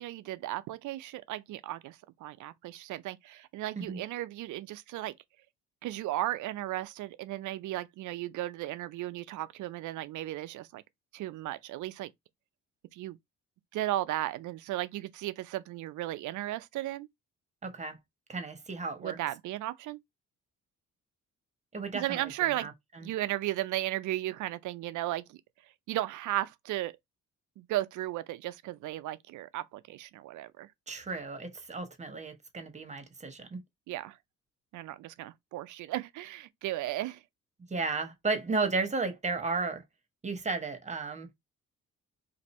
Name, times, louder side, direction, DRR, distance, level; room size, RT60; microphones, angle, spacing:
voice 1, 0.0-5.1 5.8-10.8 11.1-12.1 12.9-13.2 13.7-17.1 19.0-20.0 21.9-22.7 23.0-25.4 25.9-27.0 27.6-30.7 33.9-34.2 34.7-37.2, right 15 dB, 80° right, 0.5 m, -35 dB
voice 2, 17.6-18.0 18.3-19.2 21.7-22.7 23.0-23.1 30.9-33.6 37.7-39.8 40.2-41.3, right 3 dB, 25° right, 1.0 m, -34 dB
2.6 x 2.6 x 4.1 m
cardioid pair, 90°, 30 cm